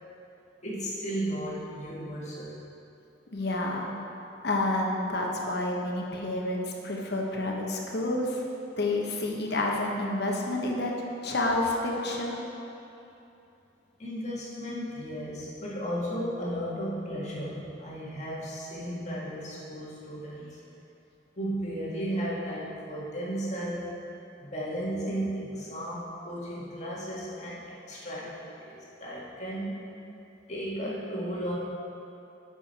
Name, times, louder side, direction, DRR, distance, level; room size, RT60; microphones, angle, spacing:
voice 1, 0.6-2.6 14.0-20.6 21.3-23.9 24.4-29.8 30.5-31.6, equal, 40° left, -6 dB, 1.7 m, -34 dB
voice 2, 3.3-3.9 4.4-8.4 8.8-10.9 11.2-12.4, left 2 dB, 60° left, -1 dB, 1.1 m, -29 dB
9.8 x 6.3 x 4.2 m, 2.9 s
head